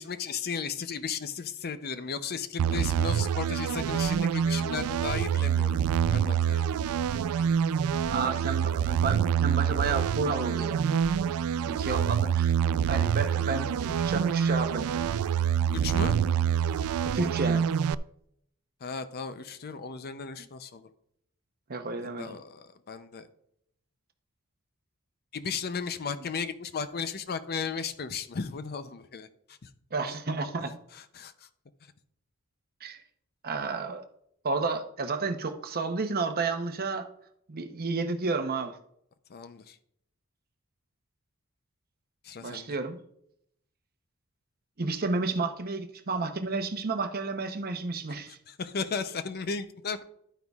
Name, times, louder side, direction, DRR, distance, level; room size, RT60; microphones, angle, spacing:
voice 1, 0.0-5.8 6.1-7.5 8.2-8.4 11.6-11.8 15.7-16.2 18.8-20.9 22.0-23.3 25.3-29.7 30.9-31.5 39.3-39.8 42.2-42.8 48.5-50.0, left 5 dB, 45° left, 11 dB, 0.6 m, -35 dB
sound 1, 2.6-18.0, right 8 dB, 70° right, 0.3 m, -26 dB
voice 2, 8.1-11.0 11.6-15.2 17.0-17.7 21.7-22.4 29.9-30.7 32.8-33.0 33.4-34.0 34.4-37.1 37.5-38.8 42.4-43.0 44.8-48.4, right 4 dB, 45° right, 7 dB, 0.8 m, -31 dB
11.0 x 9.2 x 2.4 m, 0.73 s
head